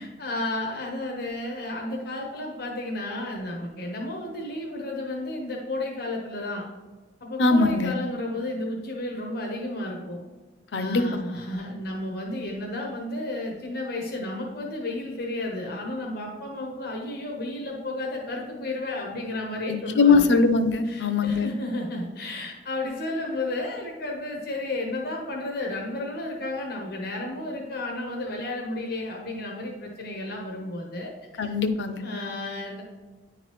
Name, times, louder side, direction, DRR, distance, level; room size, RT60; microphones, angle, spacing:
voice 1, 0.0-6.6 7.2-10.2 10.7-20.3 20.8-31.5 32.0-32.8, left 2 dB, 60° left, -1 dB, 1.0 m, -32 dB
voice 2, 7.4-7.9 10.7-11.0 19.7-21.5 31.4-32.0, left 4 dB, 80° left, 9 dB, 0.6 m, -21 dB
9.6 x 3.9 x 3.0 m, 1.3 s
head